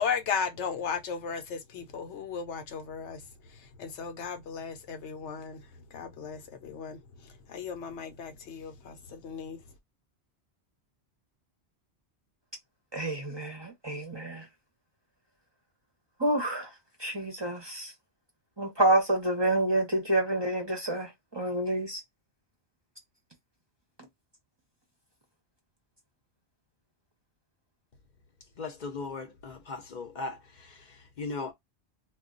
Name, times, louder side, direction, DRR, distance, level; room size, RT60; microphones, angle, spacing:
voice 1, 0.0-3.2 3.8-5.6 5.9-7.0 7.5-9.6, left 6 dB, 85° left, 1.0 m, -35 dB
voice 2, 12.9-14.4 16.2-16.7 17.0-17.9 18.6-22.0, right 1 dB, 30° right, 0.6 m, -28 dB
voice 3, 28.6-30.4 31.2-31.5, left 3 dB, 50° left, 0.7 m, -37 dB
2.3 x 2.2 x 3.7 m
omnidirectional pair, 1.1 m